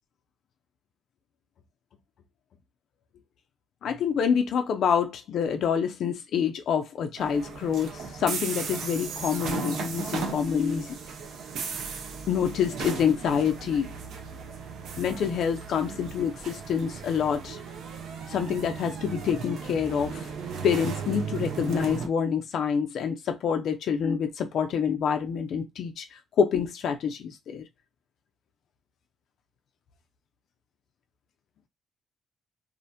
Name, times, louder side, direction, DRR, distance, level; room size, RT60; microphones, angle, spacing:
voice 1, 3.8-11.0 12.3-13.9 15.0-17.6 18.3-20.3 20.6-27.6, left 7 dB, 70° left, 0.3 m, -27 dB
sound 1, 7.2-22.1, right 5 dB, 75° right, 0.4 m, -36 dB
2.4 x 2.1 x 2.6 m
cardioid pair, 90°, 0 cm